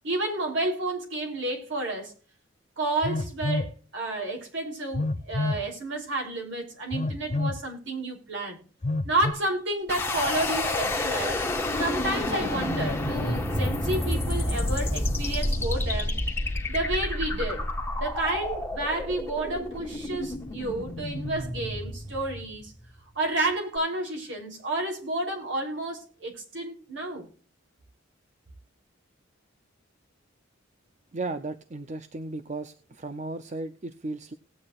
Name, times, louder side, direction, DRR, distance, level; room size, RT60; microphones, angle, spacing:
voice 1, 0.0-2.1 2.8-8.6 9.0-11.4 11.8-16.1 16.7-17.7 18.0-22.7 23.2-27.3, right 2 dB, 65° right, 3.5 m, -30 dB
Telephone, 3.0-3.7 4.9-5.7 6.9-7.6 8.8-9.3, left 2 dB, 35° left, 0.6 m, -28 dB
sound 1, 9.9-22.8, left 1 dB, 10° left, 1.7 m, -29 dB
voice 2, 31.1-34.3, right 2 dB, 35° right, 0.6 m, -35 dB
18.5 x 8.7 x 2.4 m
head